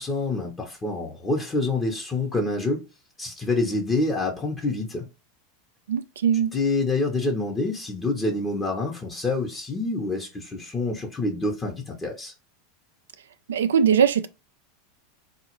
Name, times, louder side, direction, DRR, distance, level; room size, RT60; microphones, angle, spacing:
voice 1, 0.0-2.9 3.2-5.1 6.5-12.3, left 2 dB, 20° left, 1.0 m, -27 dB
voice 2, 5.9-6.5 13.5-14.3, right 7 dB, 80° right, 0.3 m, -21 dB
3.8 x 2.4 x 3.0 m
hypercardioid pair, 90°, 0 cm